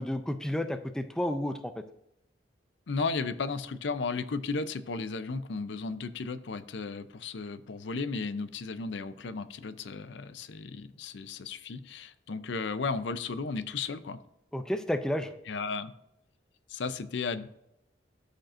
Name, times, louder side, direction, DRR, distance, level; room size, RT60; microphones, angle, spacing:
voice 1, 0.0-1.7 14.5-15.3, left 1 dB, 5° left, 8 dB, 0.4 m, -31 dB
voice 2, 2.9-14.2 15.5-15.9 16.7-17.5, left 4 dB, 70° left, 13 dB, 0.5 m, -34 dB
13.0 x 5.2 x 2.5 m, 0.83 s
head